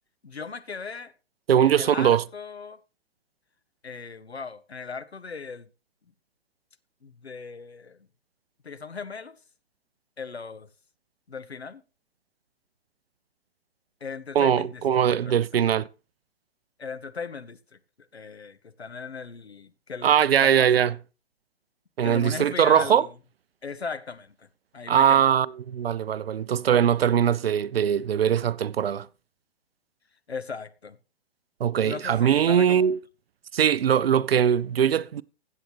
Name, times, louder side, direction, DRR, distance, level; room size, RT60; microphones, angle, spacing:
voice 1, 0.2-1.1 1.6-2.8 3.8-5.7 7.0-8.1 8.6-9.4 10.2-10.7 11.3-11.8 14.0-15.8 16.8-20.8 22.0-23.1 23.6-24.5 24.7-25.3 30.3-31.0 31.8-32.8, left 5 dB, 90° left, 0.9 m, -38 dB
voice 2, 1.5-2.2 14.4-15.9 20.0-20.9 22.0-23.1 24.9-29.1 31.6-33.0 33.5-35.2, right 9 dB, 70° right, 0.5 m, -21 dB
16.0 x 7.8 x 3.0 m
figure-of-eight pair, 120°, 31 cm